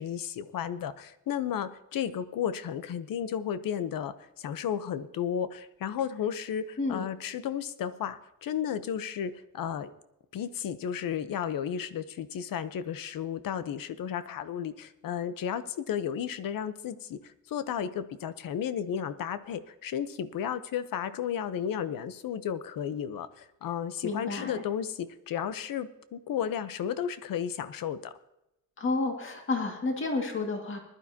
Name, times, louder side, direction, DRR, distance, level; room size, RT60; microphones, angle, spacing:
voice 1, 0.0-9.9 10.3-17.2 17.5-28.1, left 8 dB, 70° left, 13 dB, 0.9 m, -33 dB
voice 2, 24.0-24.6 28.8-30.8, left 3 dB, 35° left, 2 dB, 2.0 m, -30 dB
20.0 x 12.0 x 2.8 m, 0.89 s
wide cardioid pair, 175°, 35 cm